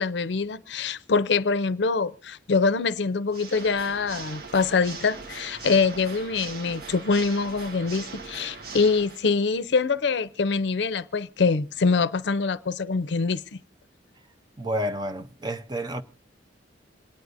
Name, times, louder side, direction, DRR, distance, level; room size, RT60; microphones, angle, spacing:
voice 1, 0.0-13.6, left 4 dB, 70° left, 0.5 m, -24 dB
Water / Mechanisms, 3.3-9.3, right 4 dB, 55° right, 1.0 m, -40 dB
voice 2, 14.6-16.0, equal, 25° right, 0.6 m, -30 dB
27.5 x 9.5 x 2.6 m
head